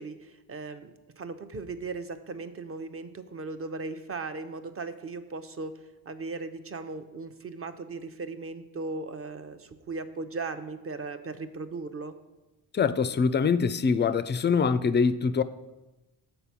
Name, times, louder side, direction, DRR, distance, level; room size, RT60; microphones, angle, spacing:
voice 1, 0.0-5.7 6.1-12.1, right 3 dB, 30° right, 0.7 m, -37 dB
voice 2, 12.7-15.4, left 5 dB, 25° left, 0.3 m, -24 dB
6.9 x 4.4 x 5.8 m
supercardioid pair, 55°, 48 cm